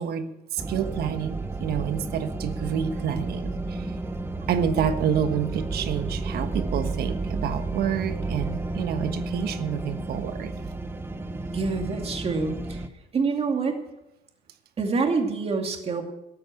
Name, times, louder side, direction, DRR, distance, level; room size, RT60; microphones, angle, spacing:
voice 1, 0.0-3.9 4.5-10.5, right 8 dB, 70° right, 10 dB, 1.3 m, -28 dB
sound 1, 0.6-12.9, right 2 dB, 15° right, 1.1 m, -32 dB
voice 2, 11.5-12.8 13.1-13.8 14.8-16.0, right 4 dB, 35° right, 3 dB, 2.5 m, -26 dB
13.5 x 8.6 x 7.8 m, 0.91 s
cardioid pair, 110°, 17 cm